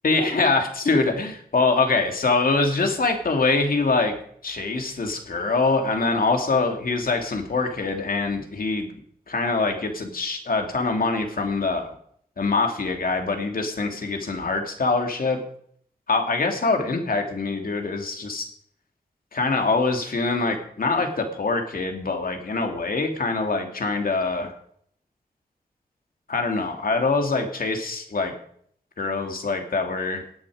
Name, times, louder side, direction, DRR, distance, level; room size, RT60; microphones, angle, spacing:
voice 1, 0.0-4.2 4.4-8.9 9.3-12.0 12.4-15.4 16.1-18.5 19.3-24.5 26.3-28.3 29.0-30.2, left 3 dB, 65° left, 4 dB, 2.7 m, -24 dB
18.0 x 8.9 x 5.1 m, 0.64 s
cardioid pair, 55°, 16 cm